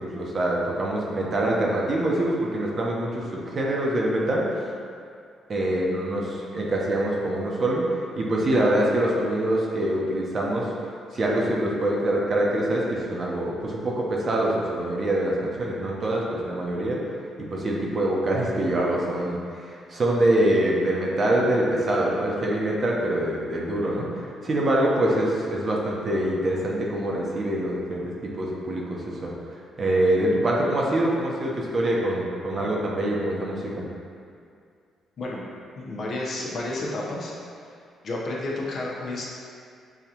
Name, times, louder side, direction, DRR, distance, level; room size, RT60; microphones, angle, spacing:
voice 1, 0.0-4.4 5.5-7.8 8.2-10.7 11.1-17.0 17.4-29.3 29.8-33.8, right 1 dB, 40° right, -3 dB, 0.8 m, -25 dB
voice 2, 35.8-37.3 37.7-37.8 38.0-39.2, left 2 dB, 55° left, -4 dB, 0.9 m, -31 dB
6.8 x 2.5 x 2.9 m, 2.3 s
cardioid pair, 90°, 0 cm